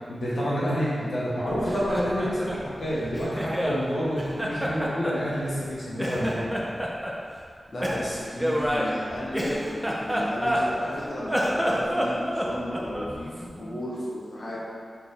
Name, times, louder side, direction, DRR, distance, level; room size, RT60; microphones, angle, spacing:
voice 1, 0.1-6.5, equal, 85° left, -9 dB, 1.5 m, -28 dB
Laughter, 1.5-3.8 4.2-5.7 6.0-7.2 7.8-10.9 11.2-13.2, equal, 5° right, 0.9 m, -28 dB
voice 2, 7.7-14.6, left 1 dB, 55° left, -7 dB, 1.5 m, -34 dB
4.5 x 4.0 x 5.6 m, 2.1 s
cardioid pair, 60°, 0 cm